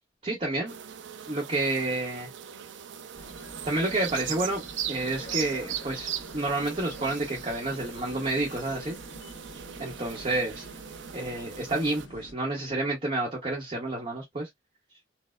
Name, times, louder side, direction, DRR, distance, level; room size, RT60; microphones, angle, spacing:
voice 1, 0.2-0.7 1.3-2.3 3.7-4.6 4.9-9.0 9.8-10.6 11.1-14.5, right 2 dB, 35° right, 0.8 m, -29 dB
sound 1, 0.7-12.1, right 9 dB, 80° right, 0.4 m, -39 dB
sound 2, 3.1-12.3, left 1 dB, 75° left, 1.1 m, -47 dB
4.2 x 2.1 x 2.3 m
head